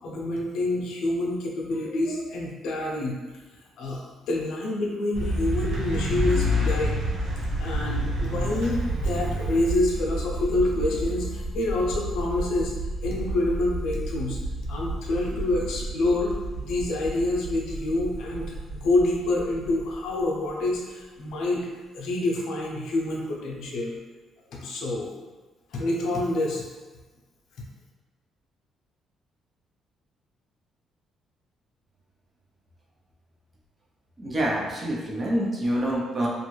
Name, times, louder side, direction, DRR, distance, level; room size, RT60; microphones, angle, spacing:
voice 1, 0.0-3.2 3.8-4.0 4.3-7.0 7.6-12.7 13.0-14.4 14.7-21.7 21.9-24.0 24.5-25.1 25.7-26.6, left 2 dB, 75° left, -2 dB, 0.6 m, -27 dB
sound 1, 5.1-20.7, right 2 dB, 25° left, 0.6 m, -32 dB
sound 2, 5.1-9.7, left 2 dB, 85° right, 0.8 m, -29 dB
voice 2, 34.2-36.3, right 1 dB, 25° right, -3 dB, 0.5 m, -26 dB
2.5 x 2.3 x 3.1 m, 1.3 s
cardioid pair, 150°, 0 cm